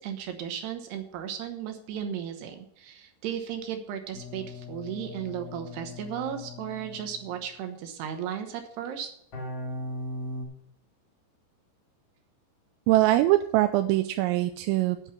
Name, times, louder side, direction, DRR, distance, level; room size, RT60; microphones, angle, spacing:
voice 1, 0.0-9.1, right 9 dB, 70° right, 6 dB, 2.7 m, -35 dB
sound 1, 4.1-7.5 9.3-10.4, left 1 dB, 40° left, 2.7 m, -39 dB
voice 2, 12.9-15.1, right 16 dB, 90° right, 8 dB, 3.2 m, -23 dB
9.1 x 7.7 x 7.0 m, 0.71 s
omnidirectional pair, 5.8 m